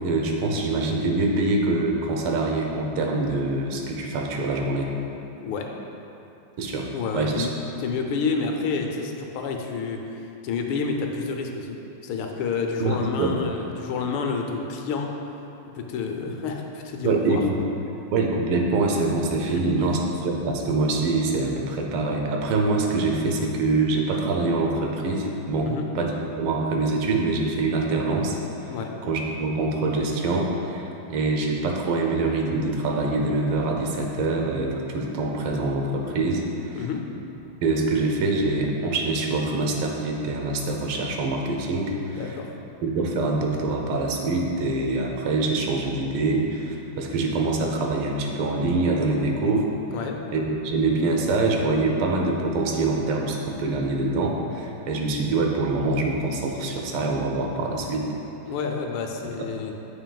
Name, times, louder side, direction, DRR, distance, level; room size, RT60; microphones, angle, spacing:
voice 1, 0.0-4.9 6.6-6.9 7.1-7.5 12.8-13.4 17.0-17.6 18.1-26.1 26.4-28.4 29.1-36.9 37.6-42.4 42.8-49.7 50.3-58.1, right 3 dB, 85° right, 1 dB, 1.7 m, -25 dB
voice 2, 5.4-5.7 6.9-7.5 7.8-15.1 15.7-17.4 19.5-19.9 25.6-25.9 28.7-28.9 36.7-37.1 42.1-42.5 49.9-50.2 58.5-59.7, left 4 dB, 80° left, 3 dB, 1.5 m, -29 dB
9.1 x 6.9 x 2.3 m, 2.8 s
omnidirectional pair, 2.3 m